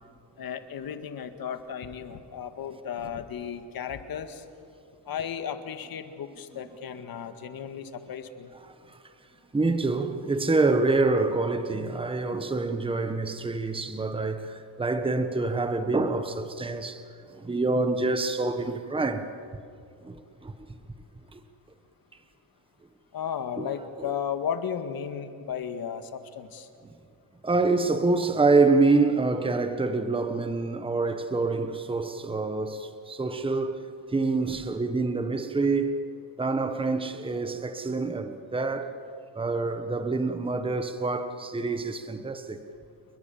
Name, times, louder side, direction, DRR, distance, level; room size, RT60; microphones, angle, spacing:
voice 1, 0.4-4.4 5.1-8.5 23.1-26.7, left 8 dB, 55° left, 1.9 m, -34 dB
voice 2, 9.5-17.0 17.3-19.2 20.0-20.5 21.3-21.4 23.6-23.7 24.0-24.1 27.4-33.8 34.1-36.0 36.4-39.0 39.3-42.6, right 3 dB, 10° right, 1.2 m, -26 dB
29.5 x 22.0 x 7.2 m
cardioid pair, 125°, 43 cm